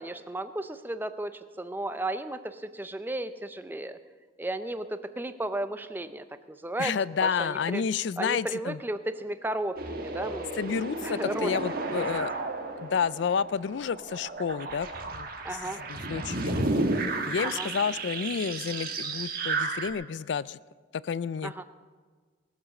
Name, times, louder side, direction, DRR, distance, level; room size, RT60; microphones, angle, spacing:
voice 1, 0.0-4.0 4.4-6.9 7.2-7.8 8.2-10.7 11.0-12.0 15.4-15.8 17.4-17.7 21.4-21.6, right 1 dB, 10° right, 10 dB, 0.5 m, -34 dB
voice 2, 6.8-8.8 10.5-12.3 12.8-16.6 17.3-20.6 20.9-21.5, left 6 dB, 70° left, 19 dB, 0.4 m, -30 dB
sound 1, 9.8-19.9, right 2 dB, 50° right, 1.4 m, -33 dB
19.0 x 7.3 x 6.5 m, 1.5 s
head